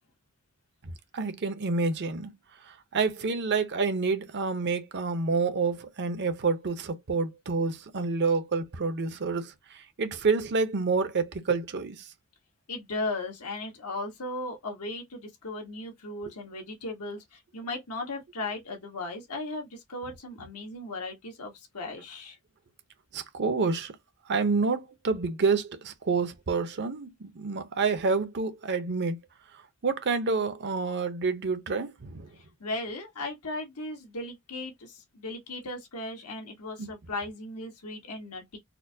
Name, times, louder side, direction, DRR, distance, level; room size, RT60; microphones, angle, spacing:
voice 1, 1.1-2.3 2.9-9.5 10.0-12.0 23.1-23.9 24.3-29.2 29.8-32.3 36.8-36.9, right 4 dB, 50° right, 0.7 m, -28 dB
voice 2, 12.7-22.4 32.4-38.6, left 2 dB, 85° left, 1.3 m, -37 dB
4.2 x 2.2 x 2.7 m
head